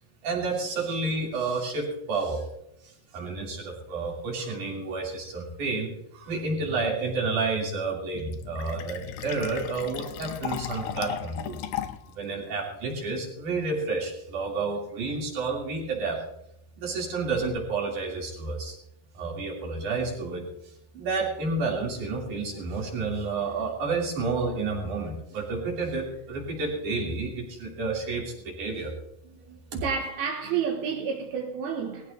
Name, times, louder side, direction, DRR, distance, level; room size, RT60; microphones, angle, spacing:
voice 1, 0.2-2.4 2.8-11.6 12.1-16.2 16.8-18.8 19.1-20.4 20.9-28.9 29.7-29.8, right 3 dB, 55° right, 4.2 m, -30 dB
Fill (with liquid), 8.1-12.1, left 11 dB, 80° left, 2.5 m, -36 dB
voice 2, 29.2-32.1, right 6 dB, 80° right, 3.1 m, -31 dB
19.5 x 15.0 x 2.7 m
omnidirectional pair, 4.5 m